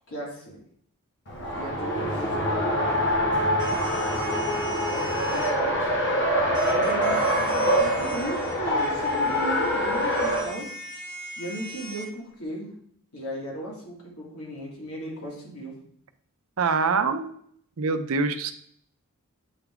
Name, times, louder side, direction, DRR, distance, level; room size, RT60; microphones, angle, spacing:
voice 1, 0.1-0.6 1.5-3.2 4.9-5.9 6.7-10.7 11.4-12.7 13.1-15.8, equal, 80° left, -3 dB, 2.3 m, -36 dB
Race car auto racing, 1.3-10.5, equal, 55° left, 1.2 m, -25 dB
sound 1, 3.6-5.5 6.5-12.1, right 2 dB, 20° right, 0.9 m, -40 dB
voice 2, 16.6-17.4 17.8-18.5, right 4 dB, 65° right, 9 dB, 0.5 m, -24 dB
8.1 x 3.5 x 3.6 m, 0.64 s
head